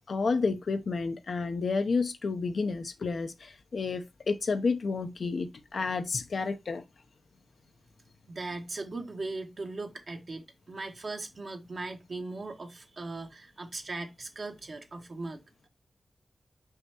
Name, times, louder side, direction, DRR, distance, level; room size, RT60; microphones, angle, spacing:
voice 1, 0.1-6.8, left 4 dB, 70° left, 0.8 m, -30 dB
voice 2, 8.3-15.4, right 3 dB, 55° right, 1.6 m, -39 dB
5.7 x 5.5 x 3.0 m
wide cardioid pair, 75°, 0 cm